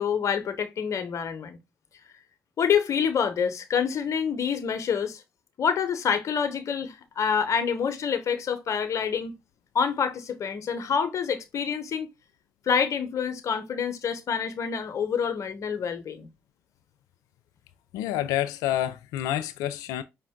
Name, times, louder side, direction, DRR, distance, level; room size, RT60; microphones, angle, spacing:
voice 1, 0.0-1.6 2.6-5.2 5.6-9.4 9.7-12.1 12.7-16.3, left 7 dB, 60° left, 0.9 m, -27 dB
voice 2, 17.9-20.0, left 12 dB, 80° left, 0.3 m, -28 dB
5.1 x 2.5 x 3.6 m
hypercardioid pair, 45°, 6 cm